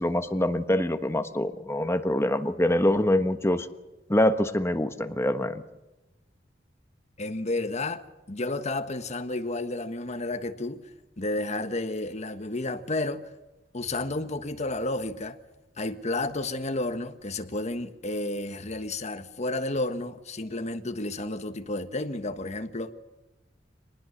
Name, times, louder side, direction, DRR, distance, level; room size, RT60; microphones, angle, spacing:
voice 1, 0.0-3.7 4.1-5.6, left 1 dB, 15° left, 1.3 m, -25 dB
voice 2, 7.2-10.9 11.2-13.3 13.7-15.4 15.8-22.9, left 2 dB, 40° left, 1.4 m, -31 dB
24.5 x 19.5 x 6.6 m
head